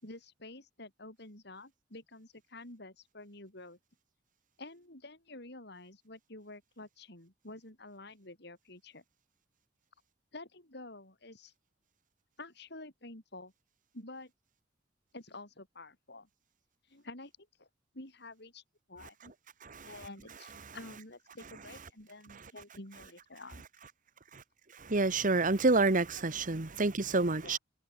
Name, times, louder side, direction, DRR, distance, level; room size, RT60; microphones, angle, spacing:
voice 1, 0.0-3.8 4.6-9.0 10.3-11.5 12.4-13.5 13.9-14.3 15.1-16.3 16.9-17.7 17.9-18.6 18.9-19.3 19.8-23.6 25.7-25.8 27.4-27.6, left 2 dB, 65° left, 6.9 m, -49 dB
voice 2, 24.8-27.6, right 3 dB, 45° right, 1.4 m, -28 dB
head